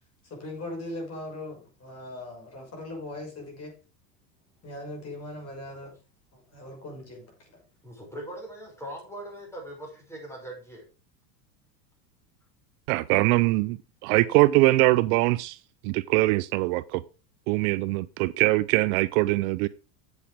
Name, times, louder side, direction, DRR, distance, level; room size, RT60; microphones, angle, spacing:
voice 1, 0.3-3.7 4.6-5.9 6.3-7.3, left 1 dB, 30° left, 6.2 m, -39 dB
voice 2, 7.8-10.8, right 1 dB, 5° left, 6.0 m, -41 dB
voice 3, 12.9-13.8 14.0-15.6 15.8-17.0 17.5-19.7, right 20 dB, 60° right, 0.6 m, -22 dB
8.3 x 8.3 x 4.9 m
supercardioid pair, 115°, 50 cm